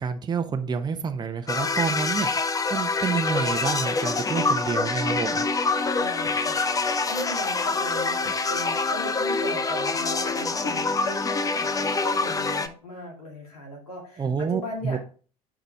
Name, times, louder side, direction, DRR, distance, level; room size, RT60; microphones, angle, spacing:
voice 1, 0.0-2.3 2.7-5.4 14.2-15.0, right 6 dB, 20° right, 7 dB, 0.8 m, -28 dB
sound 1, 1.5-12.7, left 3 dB, 20° left, 0.7 m, -26 dB
voice 2, 6.0-15.0, equal, 75° left, 0 dB, 2.5 m, -38 dB
9.0 x 5.1 x 3.5 m, 0.39 s
figure-of-eight pair, 60°, 19 cm